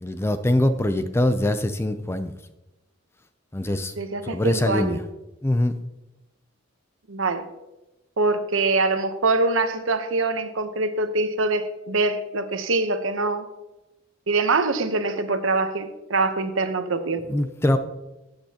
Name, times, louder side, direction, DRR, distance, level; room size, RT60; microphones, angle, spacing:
voice 1, 0.0-2.3 3.5-3.9 4.2-5.0 5.4-5.8 17.3-17.8, left 1 dB, 10° left, 10 dB, 0.4 m, -23 dB
voice 2, 4.0-5.0 7.1-7.4 8.2-13.5 14.3-17.2, right 3 dB, 75° right, 9 dB, 0.9 m, -24 dB
15.5 x 7.8 x 2.9 m, 1.0 s
head